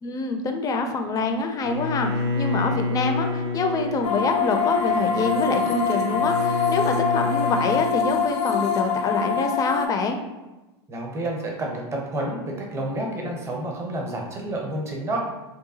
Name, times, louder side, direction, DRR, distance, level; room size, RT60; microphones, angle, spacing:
voice 1, 0.0-2.1 2.4-10.2, left 3 dB, 25° left, 5 dB, 0.4 m, -25 dB
Bowed string instrument, 1.6-7.9, left 2 dB, 85° right, 0.4 m, -28 dB
sound 1, 4.0-9.9, left 6 dB, 80° left, 0.5 m, -24 dB
voice 2, 10.9-15.2, right 1 dB, 20° right, -1 dB, 0.7 m, -29 dB
2.7 x 2.2 x 2.7 m, 1.1 s
hypercardioid pair, 105°, 14 cm